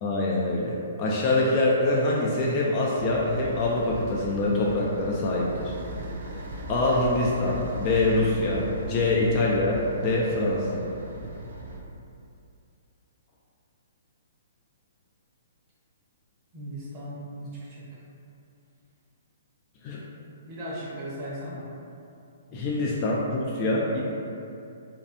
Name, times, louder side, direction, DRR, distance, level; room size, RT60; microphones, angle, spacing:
voice 1, 0.0-5.8 6.7-10.9 19.8-20.0 22.5-24.0, left 2 dB, 35° left, -4 dB, 0.3 m, -25 dB
sound 1, 2.9-11.8, right 1 dB, 65° right, 0.4 m, -37 dB
voice 2, 16.5-17.8 20.5-21.7 22.5-22.9 23.7-23.8, equal, 30° right, -8 dB, 0.8 m, -38 dB
2.7 x 2.3 x 2.5 m, 2.6 s
hypercardioid pair, 135°, 0 cm